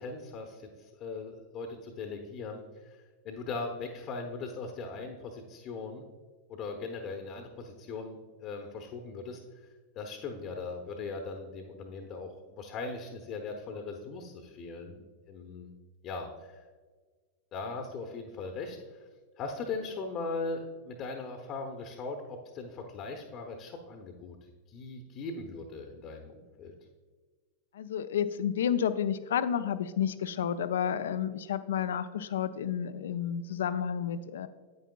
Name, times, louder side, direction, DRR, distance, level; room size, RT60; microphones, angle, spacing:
voice 1, 0.0-6.0 6.5-9.4 10.0-15.0 15.3-15.7 16.0-16.6 17.5-19.1 19.4-24.4 24.7-26.7, left 3 dB, 35° left, 4 dB, 0.8 m, -39 dB
voice 2, 27.7-34.5, left 8 dB, 60° left, 14 dB, 0.4 m, -31 dB
9.4 x 9.0 x 2.3 m, 1.5 s
figure-of-eight pair, 90°, 0 cm